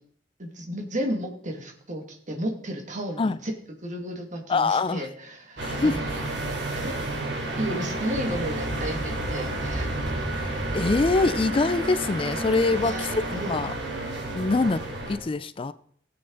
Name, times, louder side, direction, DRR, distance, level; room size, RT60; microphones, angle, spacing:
voice 1, 0.4-3.5 3.8-6.0 6.8-7.0 7.6-10.5 12.7-13.6, equal, 45° right, 2 dB, 2.2 m, -33 dB
voice 2, 4.5-5.1 5.6-6.0 10.3-13.2 13.5-13.7 14.3-14.8 15.1-15.7, left 3 dB, 30° left, 15 dB, 0.4 m, -24 dB
sound 1, 5.6-15.2, right 2 dB, 80° right, 3.1 m, -30 dB
17.5 x 7.9 x 3.9 m, 0.62 s
head